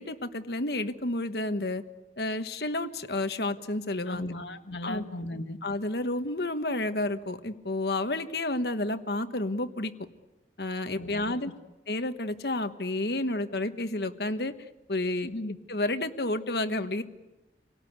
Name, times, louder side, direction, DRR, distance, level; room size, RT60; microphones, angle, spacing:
voice 1, 0.0-1.8 2.2-4.3 4.8-5.0 5.6-9.9 10.6-11.5 11.9-14.5 14.9-15.3 15.7-17.0, left 2 dB, 65° left, 9 dB, 1.4 m, -30 dB
voice 2, 4.1-5.6 11.0-11.5 15.2-15.6, left 1 dB, 85° left, 6 dB, 1.7 m, -37 dB
27.5 x 18.5 x 9.5 m, 1.1 s
head